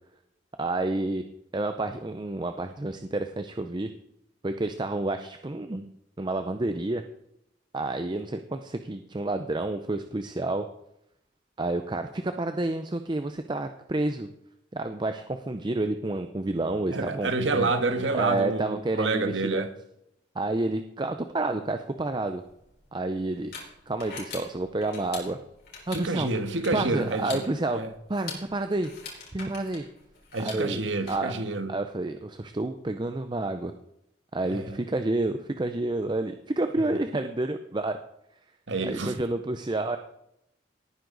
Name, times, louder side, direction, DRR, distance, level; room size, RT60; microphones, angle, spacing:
voice 1, 0.6-1.2 1.5-3.9 4.4-5.8 6.2-7.0 7.7-10.7 11.6-14.3 14.7-17.7 18.1-19.7 20.4-22.4 22.9-23.5 23.9-25.4 25.9-26.3 26.7-27.8 28.1-28.9 29.3-29.8 30.4-31.3 31.7-33.7 34.3-38.0 38.8-40.0, right 2 dB, 25° right, 0.6 m, -29 dB
voice 2, 16.9-19.7 25.9-27.4 27.7-27.9 30.3-31.8 34.4-34.8 38.7-39.1, right 3 dB, 85° right, 1.5 m, -28 dB
sound 1, 22.4-31.1, left 4 dB, 55° left, 4.6 m, -44 dB
18.5 x 9.6 x 4.0 m
head